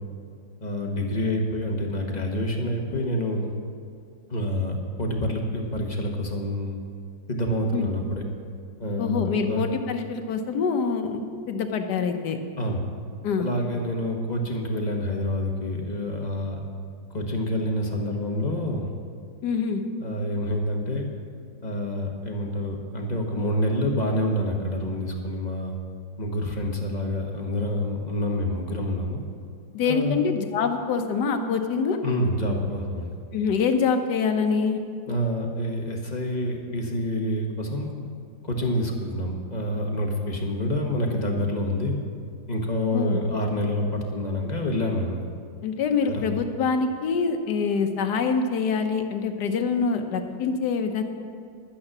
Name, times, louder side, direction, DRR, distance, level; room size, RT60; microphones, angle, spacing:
voice 1, 0.6-3.5 4.3-6.8 7.3-8.2 8.8-9.6 12.6-12.8 13.4-16.6 17.1-18.9 20.0-21.1 21.6-25.7 26.2-29.2 29.8-30.2 32.0-33.1 35.1-37.9 38.4-41.9 42.5-45.2 46.0-46.3, left 1 dB, 25° left, 1 dB, 1.1 m, -27 dB
voice 2, 9.0-12.4 13.2-13.5 19.4-19.8 29.7-32.0 33.3-34.8 42.9-43.2 45.6-51.0, left 5 dB, 65° left, 5 dB, 1.4 m, -25 dB
11.5 x 9.3 x 6.1 m, 2.2 s
omnidirectional pair, 2.1 m